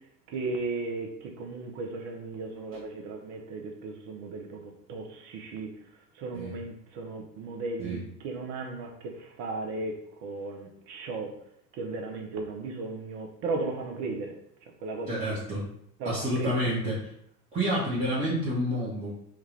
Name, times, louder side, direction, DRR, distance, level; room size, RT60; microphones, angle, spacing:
voice 1, 0.3-5.7 6.2-11.4 11.7-14.3 14.8-15.4 16.0-16.7, right 3 dB, 35° right, 0.7 m, -36 dB
voice 2, 15.1-15.6 16.0-17.1 17.5-19.1, equal, 15° right, 1.0 m, -29 dB
3.5 x 2.3 x 3.2 m
figure-of-eight pair, 85°, 50 cm